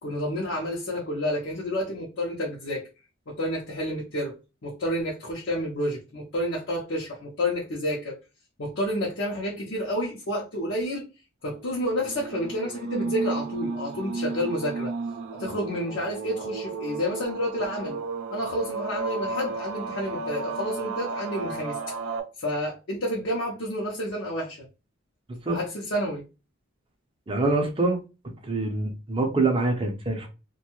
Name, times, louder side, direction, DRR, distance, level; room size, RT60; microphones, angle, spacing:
voice 1, 0.0-2.8 3.3-4.3 4.6-8.2 8.6-11.1 11.4-14.9 15.3-18.0 18.3-22.0 22.4-24.7 25.5-26.2, equal, 60° left, 0.7 m, -30 dB
sound 1, 11.9-22.2, right 3 dB, 70° right, 0.4 m, -33 dB
voice 2, 27.3-28.0 28.5-30.3, right 3 dB, 25° right, 0.6 m, -25 dB
2.6 x 2.2 x 2.9 m
head